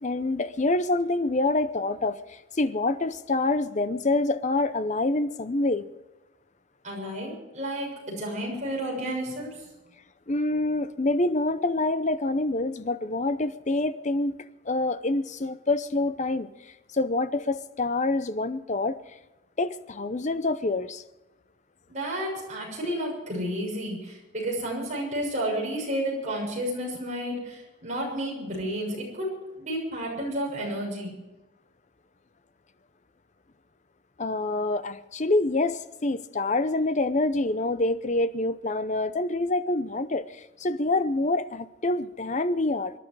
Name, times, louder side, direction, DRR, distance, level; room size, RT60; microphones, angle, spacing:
voice 1, 0.0-5.9 10.3-14.4 14.7-16.5 16.9-19.0 19.6-21.0 34.2-42.9, left 2 dB, 35° left, 0.6 m, -26 dB
voice 2, 6.8-9.6 21.9-29.3 29.6-31.2, equal, 35° right, 6.7 m, -31 dB
25.5 x 11.0 x 4.8 m
head